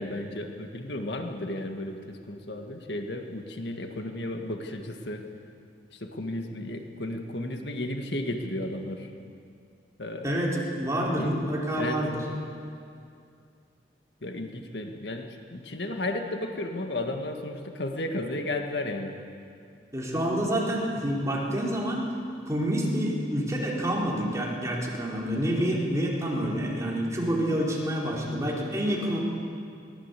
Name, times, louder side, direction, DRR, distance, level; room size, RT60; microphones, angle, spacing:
voice 1, 0.0-5.2 5.9-9.1 10.0-10.4 11.2-11.3 11.8-12.0 14.2-19.2, left 1 dB, 75° left, 4 dB, 1.8 m, -33 dB
voice 2, 10.2-12.2 19.9-22.1 22.5-29.2, equal, 20° right, -4 dB, 4.5 m, -28 dB
22.5 x 18.5 x 8.4 m, 2.4 s
head